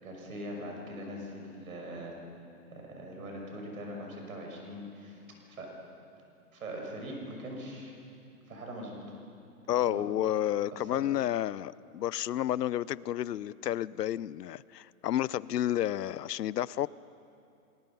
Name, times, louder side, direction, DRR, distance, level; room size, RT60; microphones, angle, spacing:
voice 1, 0.0-2.2 2.7-5.2 5.5-5.7 6.5-7.9 8.5-9.1 9.9-10.0 10.7-11.0, equal, 60° right, 0 dB, 6.1 m, -41 dB
voice 2, 9.7-16.9, left 12 dB, 85° left, 21 dB, 0.6 m, -31 dB
26.5 x 19.5 x 5.6 m, 2.6 s
hypercardioid pair, 180°, 47 cm